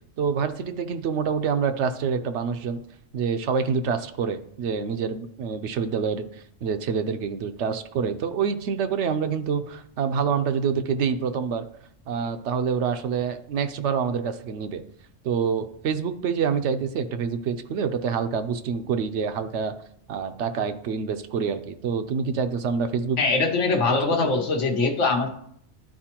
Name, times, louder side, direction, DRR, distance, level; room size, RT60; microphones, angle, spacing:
voice 1, 0.2-2.8 3.1-11.7 12.1-14.8 15.2-19.8 20.1-23.2 23.9-24.3, right 6 dB, 75° right, 9 dB, 0.9 m, -27 dB
voice 2, 23.2-25.3, left 3 dB, 80° left, 2 dB, 1.2 m, -22 dB
12.0 x 4.4 x 2.9 m, 0.67 s
omnidirectional pair, 1.2 m